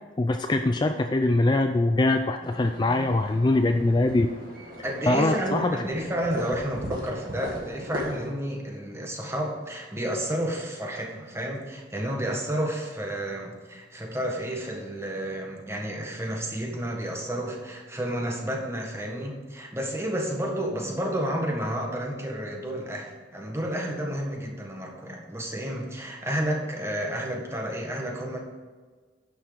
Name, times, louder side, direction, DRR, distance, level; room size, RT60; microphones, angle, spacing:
voice 1, 0.2-4.3 5.1-5.8, left 2 dB, 25° left, 6 dB, 0.4 m, -23 dB
sound 1, 2.4-8.3, left 1 dB, 50° right, 2.1 m, -38 dB
voice 2, 4.8-28.4, right 1 dB, 15° right, 0 dB, 1.6 m, -31 dB
11.0 x 6.2 x 5.1 m, 1.4 s
head